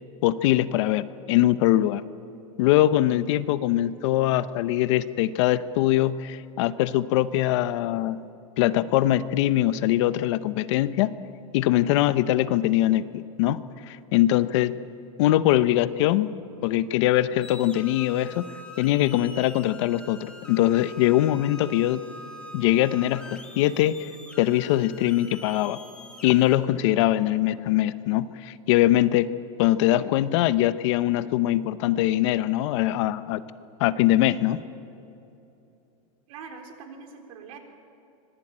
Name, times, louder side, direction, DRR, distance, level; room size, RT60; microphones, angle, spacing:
voice 1, 0.2-2.0 2.6-8.2 8.6-11.1 11.5-14.8 15.2-16.3 16.6-18.5 18.8-22.0 22.5-24.1 24.4-25.8 26.2-29.3 29.6-33.4 33.8-34.6, left 14 dB, 50° left, 14 dB, 0.8 m, -22 dB
sound 1, 17.4-26.6, left 2 dB, 5° left, 2.1 m, -45 dB
voice 2, 36.3-37.6, right 5 dB, 65° right, 4 dB, 4.0 m, -43 dB
25.0 x 19.5 x 8.8 m, 2.8 s
supercardioid pair, 170°, 19 cm